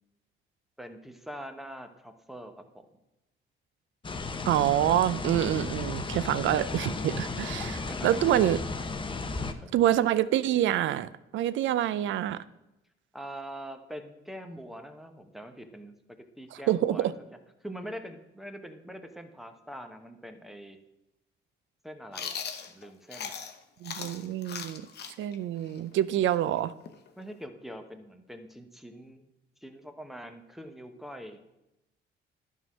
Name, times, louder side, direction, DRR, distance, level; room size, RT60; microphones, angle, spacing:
voice 1, 0.8-2.9 7.9-8.5 9.3-9.7 13.1-17.1 17.6-20.8 21.8-22.4 22.7-23.4 27.2-29.2 29.6-31.5, equal, ahead, 7 dB, 0.9 m, -44 dB
sound 1, 4.0-9.5, left 3 dB, 25° left, 0.7 m, -34 dB
voice 2, 4.5-8.6 9.7-12.4 16.7-17.1 23.8-24.9 25.2-26.7, right 12 dB, 75° right, 17 dB, 0.5 m, -26 dB
Chewing mastication, 22.1-23.6 23.8-27.5, left 7 dB, 55° left, 0.8 m, -39 dB
11.0 x 3.7 x 6.2 m, 0.93 s
cardioid pair, 90°, 20 cm